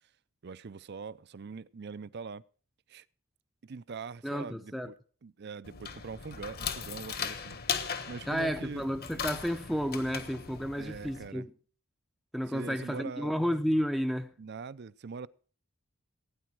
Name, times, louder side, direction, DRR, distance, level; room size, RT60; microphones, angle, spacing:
voice 1, 0.4-2.4 2.9-3.0 3.6-5.0 5.2-7.6 8.1-8.8 10.8-11.5 12.5-13.3 14.4-15.3, right 5 dB, 50° right, 0.5 m, -42 dB
voice 2, 4.2-4.9 8.3-11.5 12.3-14.3, equal, ahead, 0.5 m, -31 dB
sound 1, 5.6-11.3, left 6 dB, 45° left, 1.2 m, -38 dB
16.5 x 9.6 x 4.6 m
head